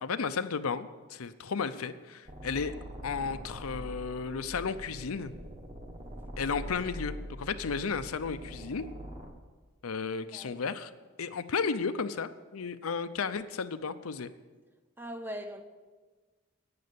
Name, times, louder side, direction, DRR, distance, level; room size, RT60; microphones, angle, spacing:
voice 1, 0.0-2.7 3.0-5.3 6.4-8.9 9.8-10.9 11.2-14.3, left 5 dB, 85° left, 0.6 m, -33 dB
sound 1, 2.3-9.3, equal, 35° right, 1.3 m, -43 dB
voice 2, 15.0-15.6, equal, 10° right, 0.7 m, -40 dB
10.5 x 8.7 x 6.9 m
head